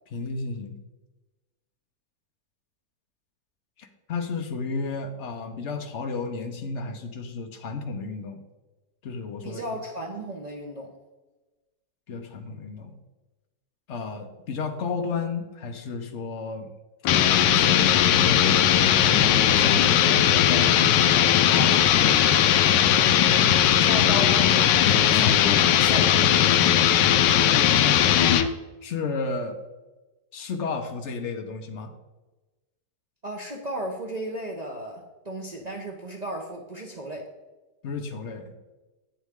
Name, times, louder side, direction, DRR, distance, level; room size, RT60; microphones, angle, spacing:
voice 1, 0.1-0.8 3.8-8.4 9.0-9.6 12.1-12.9 13.9-16.7 17.4-22.3 27.3-28.0 28.8-29.6 30.3-31.9 37.8-38.6, left 4 dB, 50° left, 6 dB, 1.0 m, -33 dB
voice 2, 9.4-10.9 23.4-26.6 33.2-37.3, right 1 dB, 35° right, -1 dB, 0.7 m, -35 dB
sound 1, 17.1-28.5, left 10 dB, 85° left, 1.2 m, -19 dB
8.7 x 7.3 x 3.6 m, 1.2 s
omnidirectional pair, 1.8 m